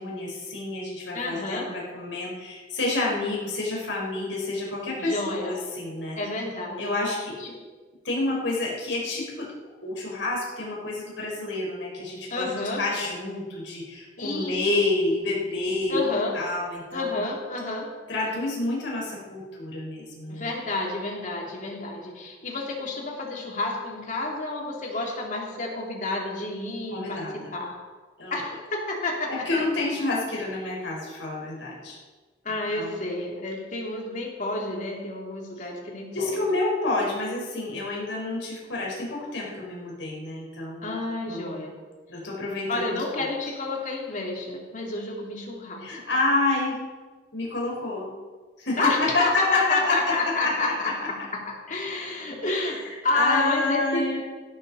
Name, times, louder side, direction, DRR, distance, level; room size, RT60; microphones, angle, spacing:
voice 1, 0.0-6.2 6.8-7.4 8.0-9.5 9.8-12.5 12.8-16.1 16.3-17.2 18.1-20.5 26.9-27.5 28.2-28.4 29.3-32.0 32.5-33.0 36.1-41.0 41.3-41.6 42.1-42.9 45.8-46.8 47.3-48.1 48.6-51.1 52.5-54.2, left 2 dB, 90° left, -3 dB, 4.6 m, -29 dB
voice 2, 1.1-1.6 5.0-5.5 6.2-6.9 7.4-7.5 12.3-12.8 14.2-14.8 15.9-16.3 16.9-17.9 20.3-27.2 27.5-27.8 28.3-29.4 32.4-36.4 40.8-41.7 42.7-46.0 48.8-50.9 51.7-52.8 53.0-54.2, left 3 dB, 45° left, -1 dB, 3.0 m, -29 dB
16.5 x 12.5 x 4.2 m, 1.4 s
head